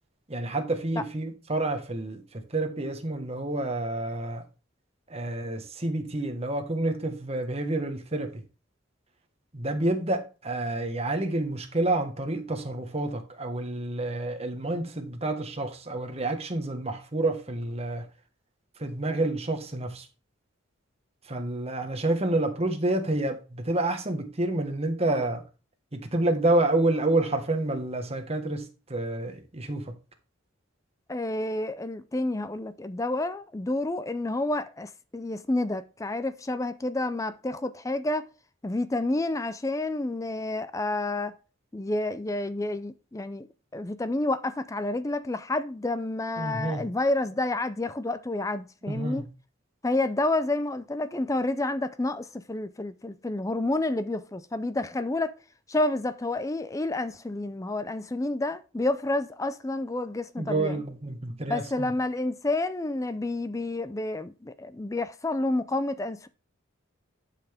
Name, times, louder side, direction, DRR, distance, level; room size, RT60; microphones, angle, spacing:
voice 1, 0.3-2.2 2.5-4.4 5.1-8.4 9.5-18.0 18.8-20.1 21.3-25.4 25.9-28.6 28.9-29.9 46.4-46.8 48.9-49.3 60.4-61.9, right 2 dB, 30° right, 1.4 m, -28 dB
voice 2, 31.1-38.3 38.6-41.3 41.7-43.5 43.7-49.3 49.8-55.3 55.7-60.8 61.5-66.3, left 2 dB, 15° left, 0.4 m, -29 dB
11.0 x 5.9 x 3.5 m
head